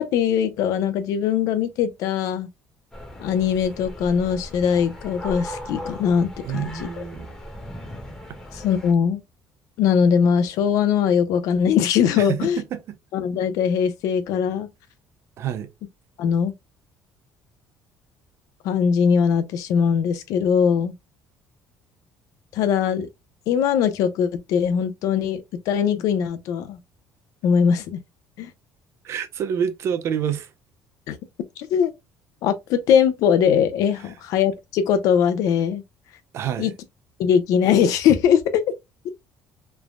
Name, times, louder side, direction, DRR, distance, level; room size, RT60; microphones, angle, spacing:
voice 1, 0.0-2.5 3.2-7.0 8.6-9.2 9.8-12.6 13.1-14.7 16.2-16.5 18.6-20.9 22.5-23.1 23.5-26.8 27.4-28.0 28.4-28.5 31.1-31.2 31.7-31.9 32.4-35.8 36.6-36.7 37.2-38.6, left 7 dB, 70° left, 0.5 m, -21 dB
sound 1, 2.9-8.9, equal, 10° left, 0.9 m, -38 dB
voice 2, 6.4-7.3 12.2-13.0 15.4-15.7 29.0-30.5 34.0-34.1 36.3-36.7, right 8 dB, 50° right, 0.4 m, -28 dB
3.2 x 2.1 x 2.4 m
cardioid pair, 135°, 6 cm